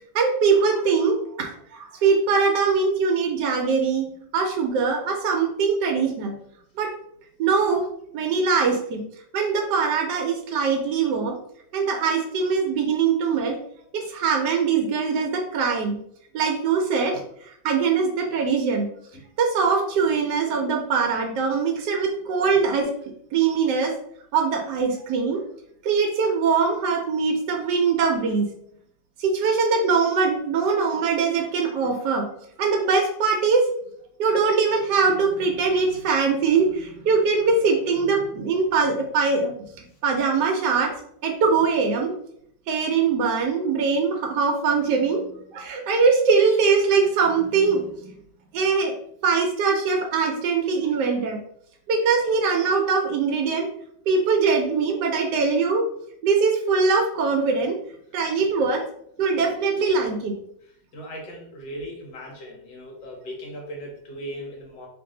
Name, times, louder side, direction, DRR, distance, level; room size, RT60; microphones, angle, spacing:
voice 1, 0.1-6.3 6.8-6.9 7.4-7.9 8.1-9.0 9.3-11.4 11.7-13.6 13.9-16.0 16.3-18.9 19.4-22.9 23.3-23.9 24.3-25.4 25.8-28.5 29.2-32.3 32.6-33.7 34.2-39.5 40.0-40.9 41.2-42.1 42.7-45.2 45.5-47.8 48.5-48.9 49.2-51.4 51.9-53.7 54.1-55.8 56.2-57.8 58.1-58.8 59.2-60.3, right 5 dB, 75° right, 2 dB, 1.1 m, -22 dB
voice 2, 60.9-64.9, equal, 75° left, -1 dB, 1.6 m, -38 dB
3.2 x 2.6 x 3.7 m, 0.69 s
omnidirectional pair, 2.0 m